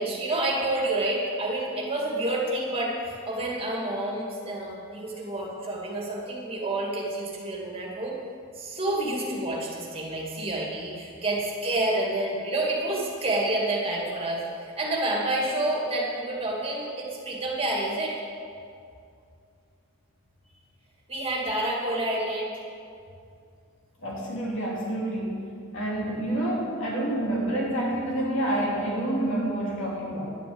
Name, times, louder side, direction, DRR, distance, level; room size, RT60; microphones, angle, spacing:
voice 1, 0.0-8.2 8.5-18.2 21.1-22.6, right 1 dB, 25° right, -3 dB, 2.3 m, -29 dB
voice 2, 24.0-25.5 25.7-30.4, right 1 dB, 60° left, -4 dB, 3.0 m, -28 dB
11.0 x 7.0 x 8.0 m, 2.4 s
head